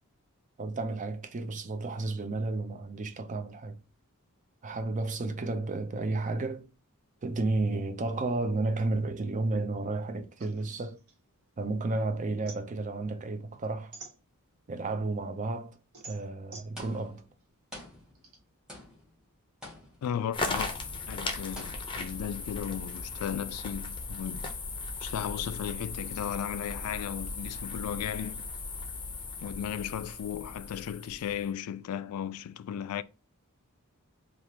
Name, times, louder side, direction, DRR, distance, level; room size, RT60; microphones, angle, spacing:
voice 1, 0.6-3.8 4.6-6.7 7.2-11.0 11.6-14.0 14.7-15.8 16.0-17.2, right 2 dB, 35° right, 0.5 m, -32 dB
sound 1, 10.4-11.9 12.2-14.7 15.2-18.4, right 3 dB, 75° right, 1.3 m, -50 dB
sound 2, 16.8-17.4 17.7-18.4 18.7-19.2 19.6-20.2 20.6-21.1 21.6-22.2, left 1 dB, 5° right, 1.2 m, -47 dB
voice 2, 20.0-20.7 21.1-24.5 25.0-28.4 29.4-33.0, left 9 dB, 75° left, 0.3 m, -35 dB
sound 3, 20.3-31.5, left 3 dB, 25° left, 0.6 m, -37 dB
3.4 x 2.4 x 2.8 m
head